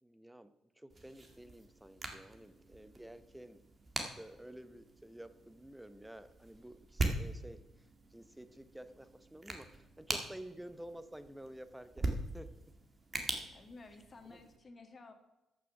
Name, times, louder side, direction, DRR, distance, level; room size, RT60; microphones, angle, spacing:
voice 1, 0.0-3.6 4.0-12.5 14.3-14.4, right 1 dB, 5° right, 12 dB, 0.8 m, -51 dB
sound 1, 0.9-14.6, right 2 dB, 30° right, 1.9 m, -42 dB
voice 2, 13.5-15.1, left 3 dB, 35° left, 6 dB, 1.9 m, -54 dB
13.5 x 6.4 x 5.9 m, 0.96 s
cardioid pair, 90°, 0 cm